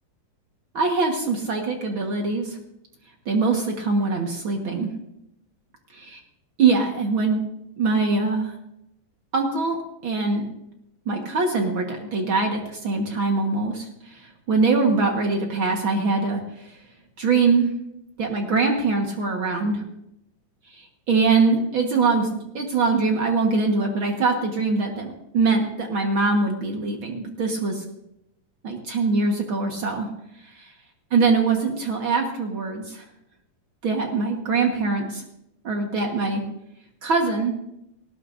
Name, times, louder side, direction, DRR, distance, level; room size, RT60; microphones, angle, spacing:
voice 1, 0.7-2.6 3.2-4.9 5.9-6.2 6.6-7.4 7.8-8.5 9.3-9.8 10.0-10.5 11.0-16.8 17.2-17.7 18.2-19.8 20.7-27.8 28.6-30.1 30.5-30.7 31.1-33.0 33.8-35.2 35.6-36.4 37.0-37.5, right 4 dB, 75° right, 2 dB, 1.1 m, -23 dB
19.0 x 17.0 x 2.6 m, 0.82 s
omnidirectional pair, 4.7 m